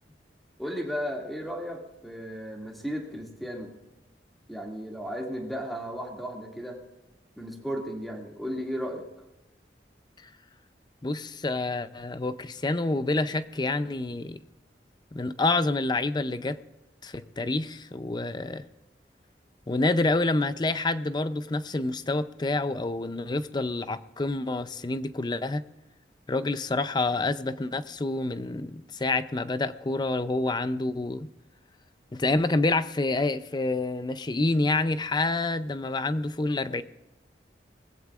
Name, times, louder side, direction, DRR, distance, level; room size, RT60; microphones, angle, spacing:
voice 1, 0.6-3.7 4.5-6.8 7.4-9.0, equal, ahead, 0 dB, 2.2 m, -35 dB
voice 2, 11.0-14.4 15.1-16.6 17.0-18.6 19.7-25.6 26.3-31.3 32.1-36.8, left 2 dB, 25° left, 13 dB, 0.5 m, -28 dB
21.0 x 15.5 x 2.4 m, 0.96 s
head